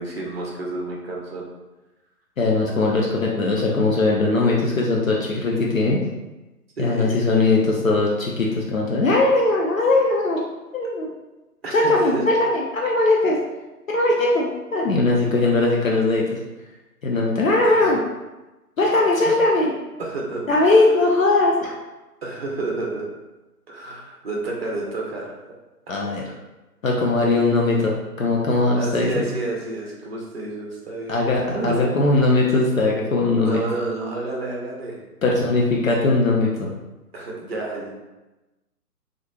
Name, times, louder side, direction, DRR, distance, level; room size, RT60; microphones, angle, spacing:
voice 1, 0.0-1.5 6.8-7.2 11.6-12.3 17.6-18.0 19.2-19.3 20.0-20.4 22.2-23.1 23.7-25.4 25.9-26.0 28.7-31.8 33.4-35.0 37.1-38.1, right 2 dB, 40° right, -2 dB, 0.6 m, -30 dB
voice 2, 2.4-6.0 6.8-10.4 10.7-11.1 11.7-13.4 13.9-16.4 17.0-18.0 18.8-19.7 20.5-21.8 25.9-26.2 26.8-27.9 28.2-29.3 31.1-33.6 35.2-36.7, left 2 dB, 60° left, -2 dB, 0.5 m, -20 dB
2.9 x 2.4 x 2.2 m, 1.1 s
figure-of-eight pair, 135°, 48 cm